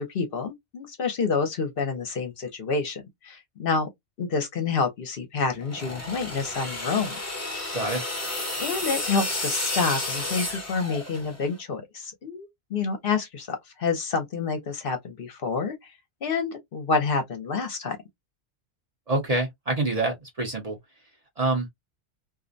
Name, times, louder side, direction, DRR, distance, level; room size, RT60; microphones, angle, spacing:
voice 1, 0.0-3.9 4.2-7.2 8.6-15.9 16.2-18.0, left 4 dB, 55° left, 0.8 m, -28 dB
sound 1, 5.6-11.5, left 2 dB, 15° left, 0.6 m, -31 dB
voice 2, 19.1-20.8 21.4-21.7, right 2 dB, 40° right, 0.7 m, -26 dB
2.4 x 2.1 x 2.5 m
omnidirectional pair, 1.2 m